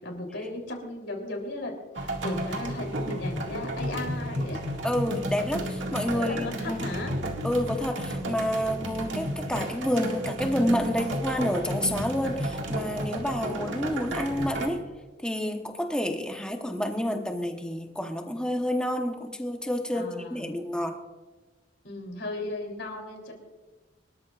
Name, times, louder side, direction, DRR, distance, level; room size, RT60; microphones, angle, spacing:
voice 1, 0.0-4.6 6.1-7.1 8.6-8.9 13.4-13.8 19.9-20.5 21.8-23.3, left 2 dB, 75° left, 2 dB, 3.5 m, -36 dB
sound 1, 2.0-14.7, right 1 dB, 85° right, 2.0 m, -32 dB
voice 2, 4.8-6.8 7.4-14.9 15.2-21.0, equal, 5° left, 4 dB, 1.0 m, -29 dB
25.0 x 13.5 x 2.5 m, 1.3 s
head